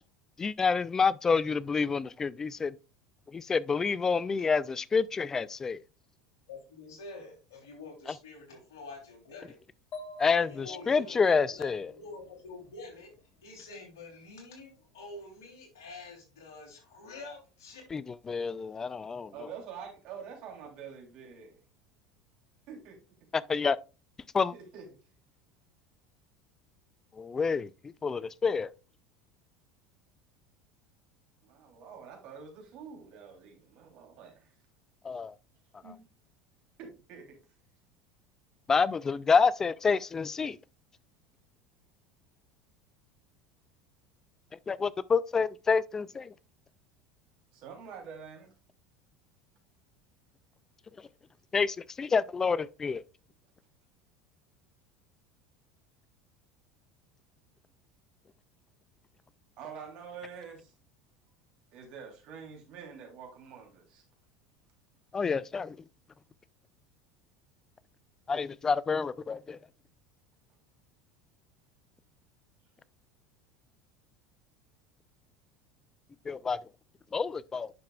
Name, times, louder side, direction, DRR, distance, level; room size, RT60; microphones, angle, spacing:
voice 1, 0.4-2.7 3.3-5.8 10.2-11.9 17.9-18.0 18.3-19.3 23.3-23.8 24.3-24.5 27.2-27.7 28.0-28.7 35.0-35.3 38.7-40.6 44.7-46.3 51.5-53.0 65.1-65.8 68.3-69.6 76.3-76.6 77.1-77.7, left 5 dB, 25° left, 0.3 m, -28 dB
voice 2, 6.5-9.6 10.4-11.7 11.9-13.1 13.4-17.8, left 3 dB, 75° left, 3.3 m, -47 dB
sound 1, 9.9-13.6, left 3 dB, 45° left, 1.5 m, -49 dB
voice 3, 19.3-21.6 22.7-23.0 24.5-24.9 31.4-34.5 35.8-36.0 36.8-37.3 47.5-48.5 59.6-60.7 61.7-64.0, right 6 dB, 55° right, 3.2 m, -46 dB
9.4 x 6.6 x 2.3 m
hypercardioid pair, 75°, 2 cm